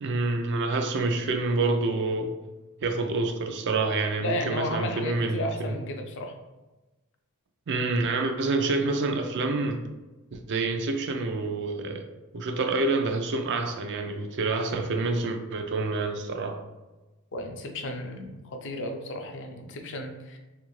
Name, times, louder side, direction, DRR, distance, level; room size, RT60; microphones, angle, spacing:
voice 1, 0.0-2.3 2.8-5.7 7.7-9.8 10.3-12.1 12.3-16.6, right 3 dB, 55° right, 5 dB, 0.4 m, -27 dB
voice 2, 4.2-6.3 17.3-20.4, left 1 dB, 55° left, 4 dB, 0.4 m, -33 dB
3.3 x 2.5 x 3.0 m, 1.1 s
head